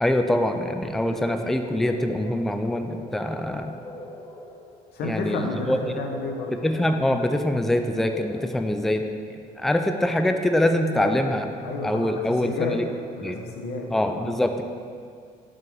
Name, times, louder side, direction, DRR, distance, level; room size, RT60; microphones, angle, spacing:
voice 1, 0.0-3.7 5.0-5.8 6.6-9.0 9.6-11.5 11.8-12.9 13.2-13.4 13.9-14.6, left 1 dB, ahead, 6 dB, 0.4 m, -24 dB
sound 1, 0.8-9.2, left 1 dB, 25° left, 1.1 m, -42 dB
voice 2, 0.9-1.2 4.9-6.5 10.9-11.2 11.6-12.8 13.2-14.3, left 3 dB, 70° left, 1 dB, 1.1 m, -31 dB
5.5 x 5.4 x 5.3 m, 2.2 s
cardioid pair, 110°, 17 cm